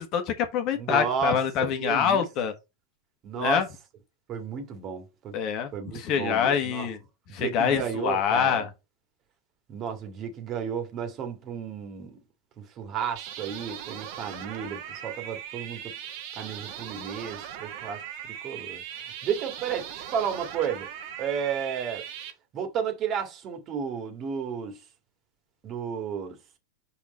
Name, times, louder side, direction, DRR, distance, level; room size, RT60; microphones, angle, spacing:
voice 1, 0.0-2.5 3.3-3.7 5.3-7.0 7.3-8.7, left 8 dB, 45° left, 1.4 m, -25 dB
voice 2, 0.8-1.4 1.8-2.2 3.2-3.6 4.3-5.3 5.7-6.9 7.4-8.6 9.7-12.2 12.8-15.9 16.4-18.0 18.4-18.8 19.2-20.9 21.2-22.0 22.5-24.8 25.6-26.4, right 7 dB, 35° right, 1.9 m, -32 dB
sound 1, 13.2-22.3, right 10 dB, 50° right, 1.4 m, -39 dB
5.7 x 4.3 x 4.3 m
hypercardioid pair, 95°, 0 cm